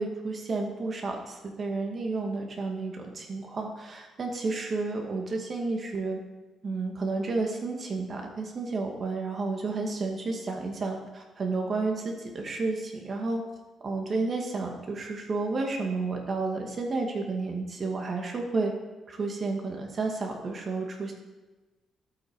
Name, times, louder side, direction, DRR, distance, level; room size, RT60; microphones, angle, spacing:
voice 1, 0.0-6.2 6.6-13.4 13.8-18.7 19.1-21.1, right 3 dB, 40° right, 1 dB, 2.1 m, -31 dB
12.0 x 8.9 x 4.8 m, 1.2 s
cardioid pair, 125°, 0 cm